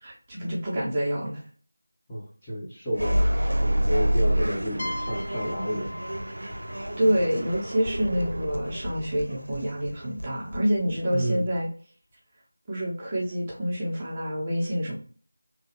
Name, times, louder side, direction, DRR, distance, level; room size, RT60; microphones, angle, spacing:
voice 1, 0.0-1.4 7.0-11.7 12.7-15.0, equal, 15° right, -6 dB, 0.8 m, -27 dB
voice 2, 2.1-3.2 3.6-5.9 11.1-11.5, equal, 10° left, -10 dB, 0.7 m, -30 dB
sound 1, 2.9-11.6, equal, 85° right, 0.6 m, -29 dB
sound 2, 3.2-8.5, right 1 dB, 45° right, 0.5 m, -41 dB
sound 3, 4.8-8.4, left 1 dB, 50° left, 0.4 m, -39 dB
3.1 x 2.3 x 2.9 m, 0.42 s
figure-of-eight pair, 170°, 0 cm